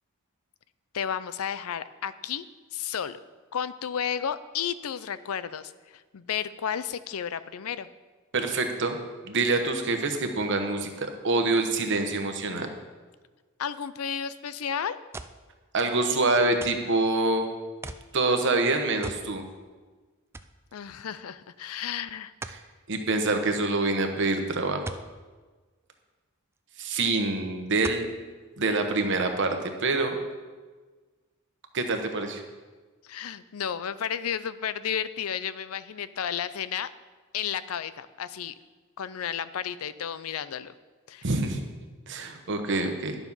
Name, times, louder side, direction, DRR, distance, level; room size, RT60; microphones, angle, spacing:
voice 1, 0.9-2.5 2.7-3.2 3.5-5.7 6.1-7.9 13.6-15.0 20.7-22.3 33.0-36.9 37.3-38.5 39.0-40.7 41.1-41.2, left 8 dB, 75° left, 15 dB, 0.5 m, -32 dB
voice 2, 8.3-9.0 9.2-12.7 15.7-17.5 18.1-19.4 22.5-22.6 22.9-24.9 26.8-28.0 28.6-29.5 29.8-30.2 31.7-32.4 41.2-41.6 42.1-43.1, right 3 dB, 55° right, 5 dB, 1.1 m, -26 dB
sound 1, 15.1-15.5 16.6-16.9 17.8-18.1 19.0-19.3 19.7-19.8 20.3-20.6 22.4-22.6 24.8-25.1 26.6-26.7 27.8-28.1 28.8-28.9, right 2 dB, 10° right, 0.3 m, -39 dB
11.0 x 7.2 x 5.6 m, 1.4 s
head